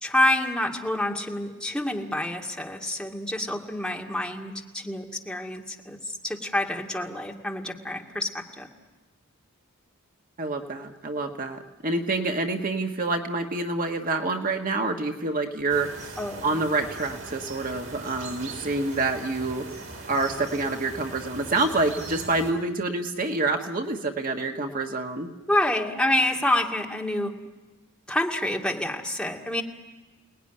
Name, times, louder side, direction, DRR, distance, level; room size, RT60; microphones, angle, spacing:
voice 1, 0.0-8.7 16.2-16.5 25.5-27.3 28.1-29.6, left 1 dB, 5° left, 0 dB, 2.2 m, -27 dB
voice 2, 10.4-19.6 20.1-25.3, right 3 dB, 45° right, 3 dB, 1.5 m, -27 dB
sound 1, 15.7-22.5, right 3 dB, 70° right, 4.4 m, -40 dB
29.0 x 19.5 x 10.0 m, 1.2 s
head